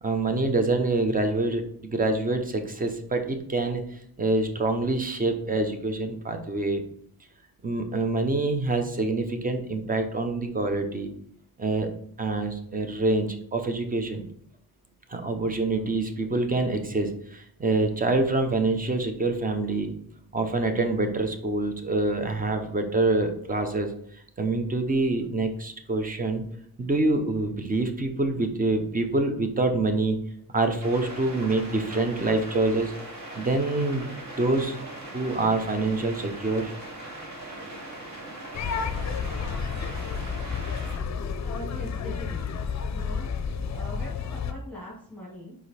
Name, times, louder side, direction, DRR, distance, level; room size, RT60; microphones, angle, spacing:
voice 1, 0.0-6.8 7.6-11.1 11.6-11.9 12.2-14.2 15.1-19.9 20.3-23.9 24.4-26.4 26.8-30.2 30.5-32.9 33.3-36.7, right 2 dB, 20° right, 6 dB, 0.7 m, -26 dB
sound 1, 30.8-41.0, right 1 dB, 45° right, 2.0 m, -40 dB
sound 2, 38.5-44.5, left 6 dB, 45° left, 0.5 m, -31 dB
voice 2, 41.4-43.3 43.7-45.6, left 1 dB, 5° left, -7 dB, 1.9 m, -41 dB
5.0 x 4.8 x 4.2 m, 0.66 s
wide cardioid pair, 170°, 38 cm